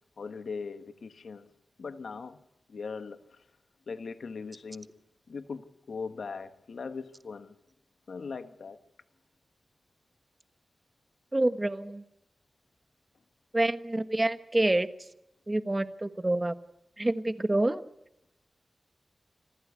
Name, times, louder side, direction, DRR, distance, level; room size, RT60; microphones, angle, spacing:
voice 1, 0.2-1.5 1.8-2.4 2.7-3.2 3.9-5.0 5.3-7.5 8.1-8.8, left 5 dB, 85° left, 1.2 m, -39 dB
voice 2, 11.3-12.0 13.5-14.9 15.5-16.5 17.0-17.8, right 1 dB, 25° right, 1.3 m, -27 dB
26.0 x 15.0 x 8.2 m
wide cardioid pair, 65°, 0 cm